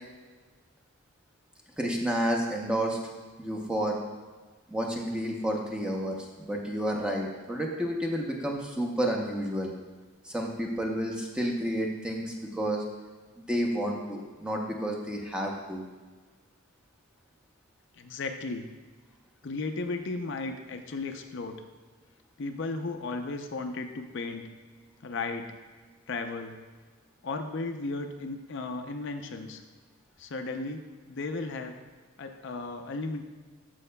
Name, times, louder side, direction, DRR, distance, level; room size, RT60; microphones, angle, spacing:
voice 1, 1.8-3.0 3.4-4.0 4.7-9.7 10.2-12.8 13.4-15.8, equal, 5° right, 0 dB, 0.7 m, -30 dB
voice 2, 18.0-18.7 19.4-21.6 22.4-24.5 25.0-25.5 26.1-26.6 27.2-29.6 30.2-30.8 31.1-31.7 32.2-33.2, left 3 dB, 55° left, 5 dB, 0.5 m, -35 dB
13.5 x 5.5 x 2.2 m, 1.4 s
head